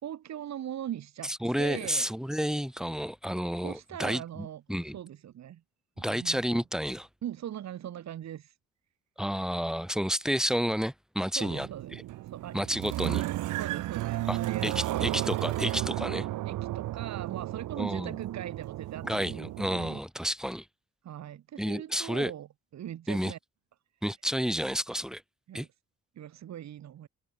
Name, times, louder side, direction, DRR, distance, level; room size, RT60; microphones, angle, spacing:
voice 1, 0.0-2.1 3.6-4.6 4.9-5.6 6.0-6.4 7.2-8.5 11.4-12.0 12.2-12.7 13.6-15.3 16.4-19.3 21.0-22.5 22.7-23.4 25.5-25.7 26.2-27.1, right 11 dB, 65° right, 1.9 m, -40 dB
voice 2, 1.2-4.9 6.0-7.1 9.2-12.0 12.5-13.2 14.3-14.4 14.6-16.3 17.8-18.2 19.0-20.7 21.6-22.3 23.1-23.3 24.0-25.2 25.5-25.7, equal, ahead, 2.4 m, -31 dB
sound 1, 11.5-20.0, right 16 dB, 90° right, 3.2 m, -33 dB
cardioid pair, 90°, 30 cm